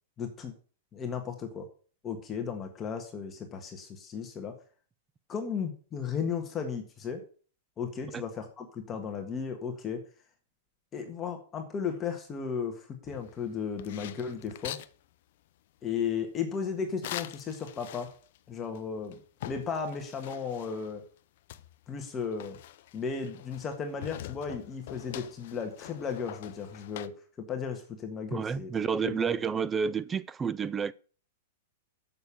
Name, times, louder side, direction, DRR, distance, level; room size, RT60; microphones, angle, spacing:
voice 1, 0.2-0.5 0.9-1.7 2.0-4.6 5.3-7.2 7.8-10.0 10.9-14.8 15.8-18.1 18.5-19.2 19.4-21.0 21.9-22.6 22.9-28.7 29.0-29.3, left 6 dB, 20° left, 1.5 m, -35 dB
sound 1, 13.0-14.9 17.0-18.4 18.7-18.8 19.1-21.0 21.5-23.7 24.0-27.1, left 13 dB, 60° left, 0.6 m, -44 dB
voice 2, 28.3-30.9, right 6 dB, 15° right, 0.4 m, -30 dB
6.9 x 6.5 x 7.1 m
supercardioid pair, 150°, 0 cm